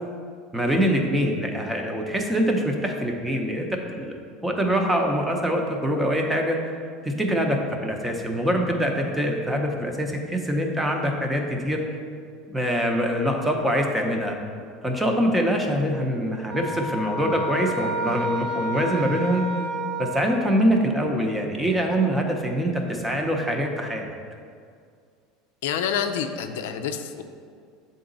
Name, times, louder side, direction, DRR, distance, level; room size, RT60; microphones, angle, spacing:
voice 1, 0.5-4.2 4.4-6.6 7.0-11.8 12.5-14.4 14.8-19.4 20.0-24.1, equal, 10° right, 2 dB, 0.7 m, -24 dB
sound 1, 16.5-20.9, equal, 50° right, 0.5 m, -31 dB
voice 2, 25.6-27.2, left 7 dB, 85° left, 7 dB, 0.4 m, -27 dB
7.2 x 3.9 x 3.9 m, 2.2 s
supercardioid pair, 125°, 0 cm